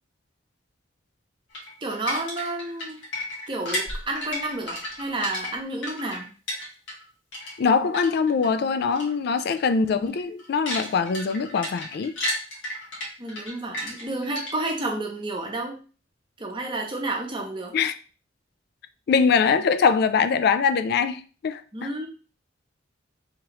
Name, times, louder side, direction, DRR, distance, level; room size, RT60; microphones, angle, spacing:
sound 1, 1.5-7.1 7.3-8.5 8.9-9.1 9.4-9.6 10.0-14.8, left 1 dB, 75° left, 1.6 m, -33 dB
voice 1, 1.8-3.0 3.5-6.3 13.2-15.8 16.4-17.7 21.7-22.1, right 2 dB, 25° right, 0.8 m, -30 dB
voice 2, 7.6-12.1 17.7-18.0 19.1-21.9, left 5 dB, 55° left, 0.3 m, -23 dB
3.6 x 3.0 x 3.0 m
head